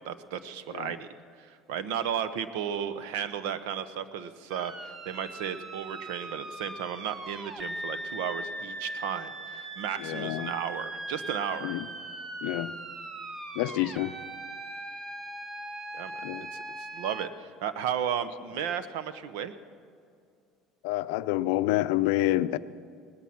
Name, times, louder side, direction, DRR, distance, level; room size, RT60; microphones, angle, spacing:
voice 1, 0.0-1.1 1.4-11.8 15.9-16.6 16.9-19.5, right 8 dB, 85° right, 1.0 m, -34 dB
sound 1, 4.5-17.3, right 1 dB, 20° right, 1.1 m, -40 dB
voice 2, 10.0-10.5 11.6-11.9 12.4-12.7 13.5-14.1 16.2-16.5 20.8-22.6, left 16 dB, 85° left, 0.5 m, -28 dB
19.0 x 13.0 x 5.9 m
cardioid pair, 130°, 0 cm